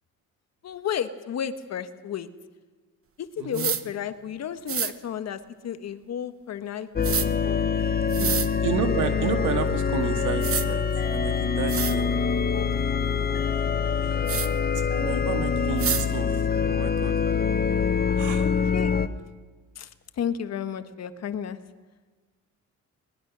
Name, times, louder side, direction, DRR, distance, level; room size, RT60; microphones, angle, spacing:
voice 1, 0.6-2.3 3.2-7.6 14.2-14.5 15.0-15.3 18.4-18.9 19.8-19.9 20.2-21.6, left 8 dB, 60° left, 10 dB, 1.3 m, -33 dB
voice 2, 3.4-3.7 8.2-8.3 8.6-10.8 11.1-12.2 14.9-17.1 18.2-18.5, right 7 dB, 85° right, 6 dB, 2.1 m, -31 dB
sound 1, 3.5-3.8 4.7-4.9 7.0-7.3 8.1-8.5 9.9-10.0 10.4-10.7 11.3-11.4 11.7-12.0 14.3-14.5 15.8-16.0, right 8 dB, 45° right, 1.1 m, -27 dB
sound 2, 6.9-19.1, left 6 dB, 30° left, 0.9 m, -25 dB
23.0 x 20.5 x 6.2 m, 1.3 s
cardioid pair, 90°, 30 cm